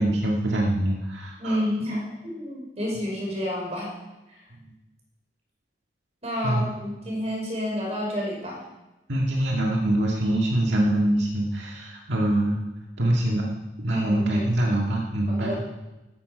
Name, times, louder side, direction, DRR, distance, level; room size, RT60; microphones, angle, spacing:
voice 1, 0.0-1.6 6.4-6.7 9.1-12.6 13.0-13.5 13.8-15.6, right 1 dB, 80° right, -2 dB, 1.8 m, -24 dB
voice 2, 1.4-3.9 4.3-4.4 6.2-8.6 13.9-14.4 15.3-15.6, equal, 35° right, -2 dB, 5.3 m, -30 dB
14.0 x 13.0 x 5.2 m, 1.0 s
head